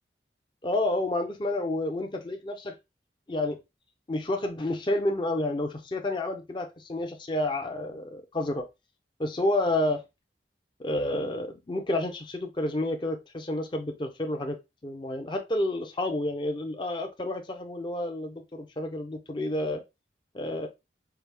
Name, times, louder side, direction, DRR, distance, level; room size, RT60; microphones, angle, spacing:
voice 1, 0.6-2.7 3.3-3.6 4.1-8.7 9.2-10.0 10.8-14.6 14.8-19.8 20.3-20.7, left 1 dB, 25° left, 0.5 m, -30 dB
4.7 x 2.3 x 3.3 m
head